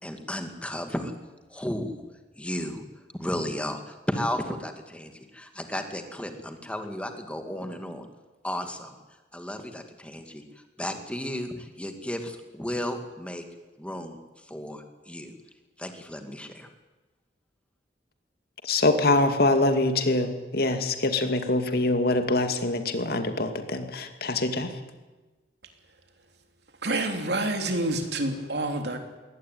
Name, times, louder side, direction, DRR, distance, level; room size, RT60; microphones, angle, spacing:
voice 1, 0.0-1.1 1.5-2.0 2.3-2.8 3.2-8.1 8.4-8.9 9.3-13.4 13.8-15.3 15.8-16.7, left 1 dB, 5° left, 6 dB, 2.4 m, -34 dB
voice 2, 18.6-24.7, left 2 dB, 60° left, 7 dB, 2.4 m, -24 dB
voice 3, 26.8-29.0, right 2 dB, 70° right, 5 dB, 3.3 m, -28 dB
22.0 x 18.0 x 9.5 m, 1.2 s
head